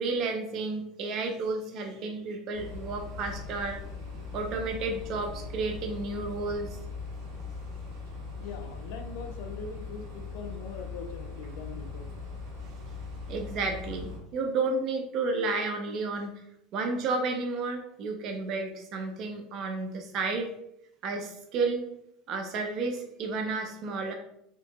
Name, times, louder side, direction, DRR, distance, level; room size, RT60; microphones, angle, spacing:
voice 1, 0.0-3.8 4.3-6.8 13.3-16.3 16.7-20.5 21.0-21.8 22.3-24.1, right 3 dB, 50° right, 4 dB, 0.4 m, -31 dB
sound 1, 2.5-14.2, left 4 dB, 85° right, 0.9 m, -40 dB
voice 2, 8.4-12.1, left 5 dB, 75° left, 5 dB, 0.4 m, -42 dB
2.8 x 2.5 x 2.2 m, 0.78 s
supercardioid pair, 120°, 0 cm